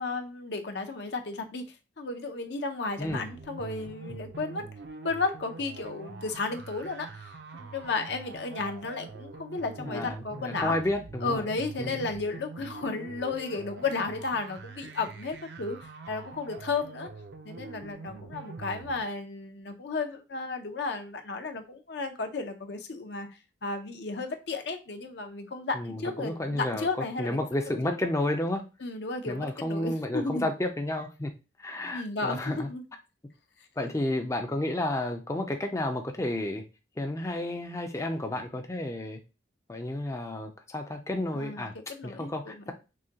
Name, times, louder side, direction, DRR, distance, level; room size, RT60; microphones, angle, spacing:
voice 1, 0.0-1.6 2.0-4.6 5.0-10.8 11.2-15.8 16.1-17.1 17.4-23.3 23.6-27.4 27.7-28.0 28.8-30.5 31.9-32.8 41.3-42.7, left 3 dB, 65° left, 0.7 m, -33 dB
sound 1, 3.0-19.0, right 4 dB, 70° right, 0.6 m, -44 dB
voice 2, 9.8-11.5 11.8-12.0 25.7-26.9 27.2-28.6 29.3-31.3 31.6-32.7 33.8-36.6 37.0-39.2 39.7-41.7 42.0-42.7, left 1 dB, 15° left, 0.4 m, -31 dB
6.1 x 2.2 x 2.8 m
head